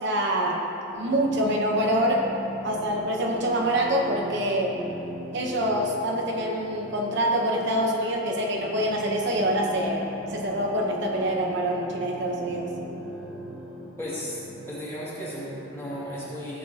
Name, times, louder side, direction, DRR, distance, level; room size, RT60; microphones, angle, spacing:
voice 1, 0.0-0.6 1.0-2.2 2.6-4.8 5.3-10.0 10.3-12.7, right 1 dB, 55° right, -1 dB, 1.0 m, -25 dB
sound 1, 0.9-16.1, right 1 dB, 5° right, 1.9 m, -39 dB
voice 2, 14.0-14.4 14.7-16.6, equal, 10° left, -9 dB, 2.3 m, -35 dB
15.5 x 7.3 x 2.9 m, 2.8 s
head